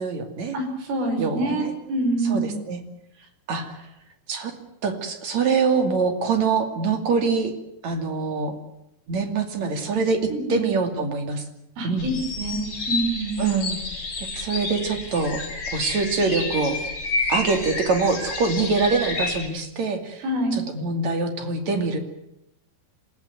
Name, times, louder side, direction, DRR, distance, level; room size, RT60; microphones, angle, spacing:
voice 1, 0.0-0.6 1.2-1.7 2.3-2.8 3.5-3.8 4.3-4.5 4.8-7.5 7.8-8.5 9.1-10.2 10.5-11.4 11.8-12.1 13.4-13.8 14.2-15.4 15.7-16.8 17.3-20.2 20.5-22.0, right 4 dB, 45° right, 6 dB, 3.0 m, -24 dB
voice 2, 0.5-2.5 10.3-10.6 11.8-13.4 20.2-20.6, right 2 dB, 75° right, 4 dB, 7.9 m, -26 dB
sound 1, 12.0-19.5, left 3 dB, 30° left, 4.9 m, -30 dB
27.0 x 16.0 x 9.4 m, 0.85 s
omnidirectional pair, 5.8 m